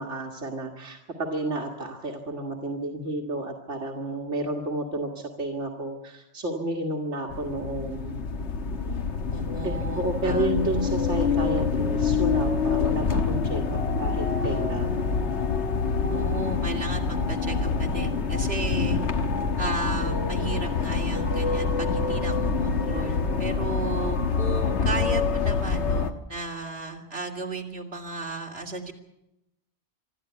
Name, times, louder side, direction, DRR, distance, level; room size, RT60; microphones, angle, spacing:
voice 1, 0.0-8.2 9.6-15.1, right 2 dB, 80° right, 1 dB, 2.1 m, -31 dB
sound 1, 7.3-26.1, left 5 dB, 70° left, 1.5 m, -26 dB
voice 2, 9.3-10.5 16.1-19.0 19.6-28.9, right 3 dB, 60° right, 1 dB, 3.1 m, -34 dB
Explosion, 14.4-16.1, equal, 50° left, 4.0 m, -42 dB
25.5 x 13.0 x 9.3 m, 0.87 s
omnidirectional pair, 1.2 m